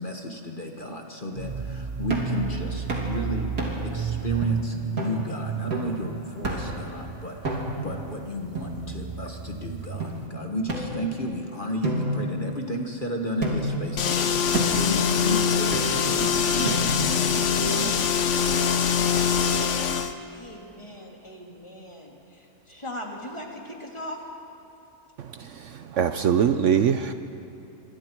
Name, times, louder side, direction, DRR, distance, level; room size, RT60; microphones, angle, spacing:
voice 1, 0.0-3.5 3.8-18.1, equal, 35° left, 2 dB, 1.5 m, -33 dB
sound 1, 1.4-10.3, right 6 dB, 50° right, 0.4 m, -33 dB
sound 2, 2.1-2.4 2.9-3.1 3.6-3.9 4.4-4.5 5.0-5.2 5.7-6.0 6.4-6.8 7.4-7.9 8.5-9.3 10.0-10.1 10.7-11.4 11.8-12.9 13.4-13.8 14.5-14.9 15.7-16.2 16.6-17.2, right 1 dB, 80° right, 3.5 m, -30 dB
sound 3, 14.0-20.1, left 6 dB, 60° left, 1.2 m, -23 dB
voice 2, 20.3-24.2, left 1 dB, 20° left, 0 dB, 2.6 m, -39 dB
voice 3, 25.2-27.1, right 8 dB, 65° right, 9 dB, 0.9 m, -23 dB
26.5 x 24.5 x 4.6 m, 2.9 s
omnidirectional pair, 1.5 m